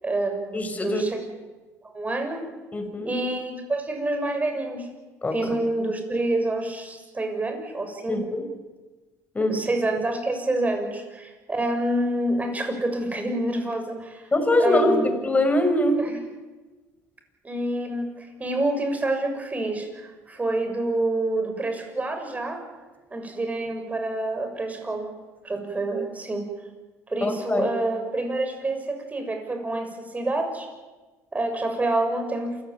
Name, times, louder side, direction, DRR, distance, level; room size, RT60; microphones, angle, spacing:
voice 1, 0.0-1.2 1.8-2.5 3.0-4.9 5.3-8.2 9.5-14.3 14.6-15.1 16.0-16.2 17.4-22.6 23.1-25.1 25.4-26.5 27.1-30.7 31.3-32.6, right 2 dB, 20° right, 5 dB, 7.0 m, -27 dB
voice 2, 0.5-1.0 2.7-3.1 5.2-5.3 8.1-8.4 9.3-9.6 14.3-15.0 15.2-16.0 27.2-27.7, left 1 dB, 20° left, 6 dB, 6.2 m, -22 dB
27.5 x 16.5 x 9.5 m, 1.2 s
supercardioid pair, 80°, 7 cm